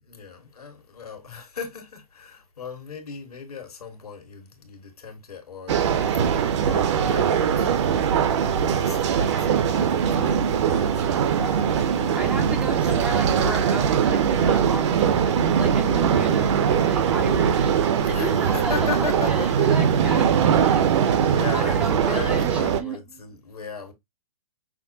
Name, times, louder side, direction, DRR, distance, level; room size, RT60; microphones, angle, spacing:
voice 1, 0.0-8.5 8.8-12.6 18.0-19.7 21.2-23.9, left 6 dB, 85° left, 1.4 m, -38 dB
sound 1, 5.7-22.8, right 7 dB, 50° right, 0.7 m, -21 dB
voice 2, 12.1-23.0, right 2 dB, 5° right, 0.4 m, -34 dB
5.7 x 2.2 x 2.7 m
hypercardioid pair, 130°, 19 cm